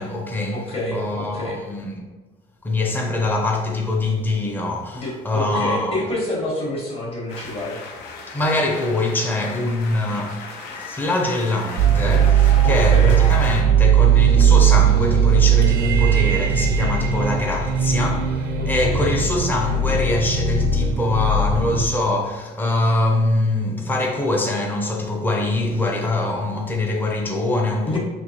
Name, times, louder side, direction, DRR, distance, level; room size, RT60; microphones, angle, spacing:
voice 1, 0.0-0.6 0.9-2.0 2.6-6.0 8.3-10.4 10.8-28.0, left 2 dB, 10° left, 0.6 m, -23 dB
voice 2, 0.5-1.6 4.9-7.8 12.6-13.2 18.7-19.3 27.8-28.0, left 1 dB, 35° left, 1.3 m, -27 dB
sound 1, 7.3-13.6, left 3 dB, 85° left, 0.6 m, -35 dB
sound 2, 11.8-21.9, right 7 dB, 70° right, 0.4 m, -18 dB
4.4 x 2.8 x 2.8 m
cardioid pair, 110°, 17 cm